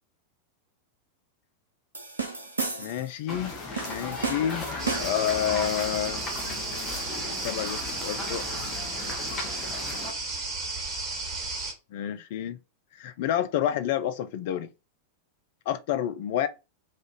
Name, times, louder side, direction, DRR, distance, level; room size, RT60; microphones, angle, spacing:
sound 1, 1.9-3.1 3.8-5.3, right 4 dB, 75° right, 0.5 m, -33 dB
voice 1, 2.8-6.2 7.4-8.4 11.9-12.6 13.0-14.7 15.7-16.5, left 10 dB, 50° left, 0.4 m, -29 dB
sound 2, 3.3-10.1, left 3 dB, 30° left, 1.0 m, -36 dB
sound 3, 4.8-11.7, right 3 dB, 25° right, 1.4 m, -34 dB
3.3 x 2.5 x 3.8 m
figure-of-eight pair, 90°, 0 cm